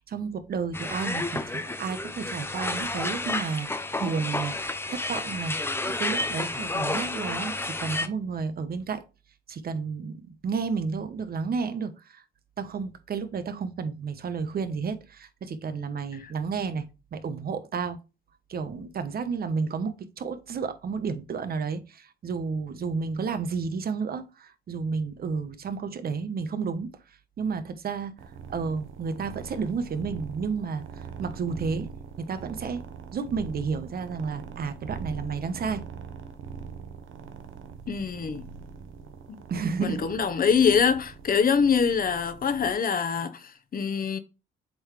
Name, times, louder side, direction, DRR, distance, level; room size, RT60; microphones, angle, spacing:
voice 1, 0.0-4.5 4.9-5.5 5.9-9.0 9.5-12.2 12.6-18.0 18.5-26.9 27.4-28.1 28.5-31.9 32.2-32.8 33.1-35.8 39.5-40.1, right 5 dB, 50° right, 1.2 m, -31 dB
sound 1, 0.7-8.1, left 2 dB, 10° left, 0.8 m, -31 dB
sound 2, 28.2-42.7, right 6 dB, 80° right, 1.1 m, -42 dB
voice 2, 37.9-38.4 39.3-39.4 39.8-44.2, left 6 dB, 45° left, 1.1 m, -24 dB
7.7 x 4.0 x 3.3 m
cardioid pair, 90°, 20 cm